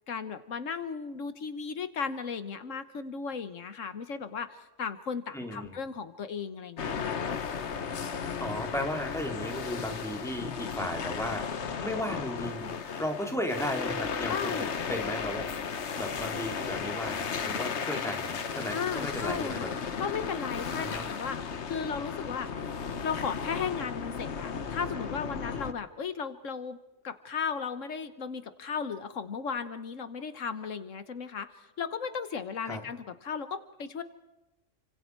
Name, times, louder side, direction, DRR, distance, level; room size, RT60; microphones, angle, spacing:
voice 1, 0.1-7.2 14.2-14.7 18.7-19.7 20.0-22.5 23.0-26.8 27.0-34.0, left 6 dB, 80° left, 11 dB, 1.5 m, -36 dB
voice 2, 5.3-5.8 8.4-15.5 16.0-19.8 20.7-21.1 32.7-32.8, left 1 dB, ahead, 2 dB, 2.9 m, -35 dB
sound 1, 6.8-25.7, left 6 dB, 65° left, 1.4 m, -35 dB
30.0 x 25.5 x 4.6 m, 1.0 s
omnidirectional pair, 1.3 m